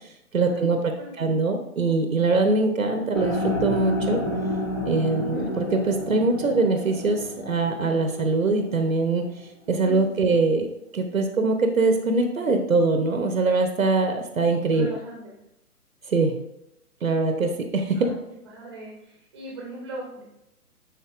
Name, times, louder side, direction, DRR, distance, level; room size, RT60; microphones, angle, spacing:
voice 1, 0.3-0.8 1.2-4.2 4.9-9.2 9.7-10.7 10.9-14.9 16.1-16.4 17.0-18.1, right 3 dB, 60° right, 5 dB, 0.8 m, -23 dB
sound 1, 3.1-9.3, left 1 dB, 15° left, 0.7 m, -30 dB
voice 2, 5.1-5.5 9.8-10.4 14.7-15.3 17.9-18.2 18.4-20.2, right 2 dB, 20° right, -3 dB, 0.9 m, -40 dB
10.5 x 4.0 x 2.4 m, 0.85 s
figure-of-eight pair, 135°, 46 cm